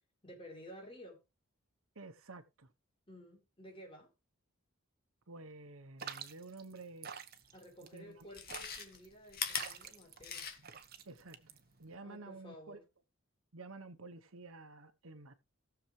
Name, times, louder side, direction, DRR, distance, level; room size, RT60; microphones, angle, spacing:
voice 1, 0.2-1.2 3.1-4.1 7.5-10.4 12.0-12.8, equal, 25° left, 4.3 m, -53 dB
voice 2, 1.9-2.7 5.3-7.2 7.9-8.4 11.1-11.4 11.8-12.8 13.5-15.3, right 3 dB, 75° right, 1.1 m, -51 dB
sound 1, 6.0-11.9, right 7 dB, 45° right, 1.1 m, -49 dB
Chewing mastication, 7.4-7.5 8.2-10.9 11.2-11.3, left 7 dB, 45° left, 2.0 m, -41 dB
17.5 x 7.0 x 3.3 m
head